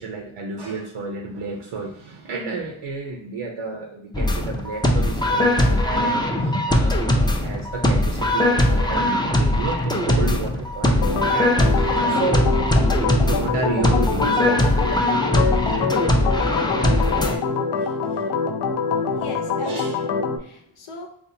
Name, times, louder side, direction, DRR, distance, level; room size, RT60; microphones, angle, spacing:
voice 1, 0.0-12.5 13.3-14.9 17.5-18.4 19.0-19.2 19.6-20.0, right 3 dB, 75° right, 1 dB, 0.7 m, -31 dB
sound 1, 4.1-17.4, left 1 dB, 10° left, 0.4 m, -20 dB
Organ, 11.0-20.4, left 5 dB, 60° left, 0.5 m, -25 dB
voice 2, 19.1-21.1, left 3 dB, 80° left, 2 dB, 0.9 m, -38 dB
4.2 x 2.4 x 2.6 m, 0.70 s
cardioid pair, 70°, 49 cm